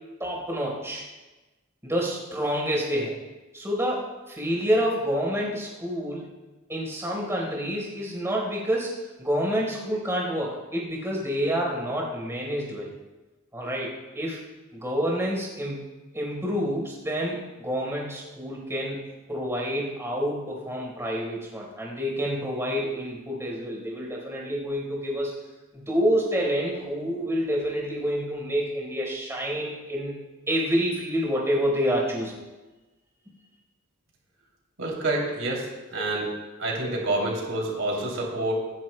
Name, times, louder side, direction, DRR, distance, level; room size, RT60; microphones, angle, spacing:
voice 1, 0.2-1.0 1.8-3.2 3.5-6.3 6.7-12.9 13.5-14.4 14.7-15.8 16.1-19.0 19.3-25.3 25.7-30.1 30.5-32.4, equal, 15° right, -3 dB, 4.2 m, -28 dB
voice 2, 34.8-36.3 36.6-38.5, right 2 dB, 90° right, -2 dB, 2.9 m, -28 dB
26.0 x 11.0 x 2.2 m, 1.1 s
head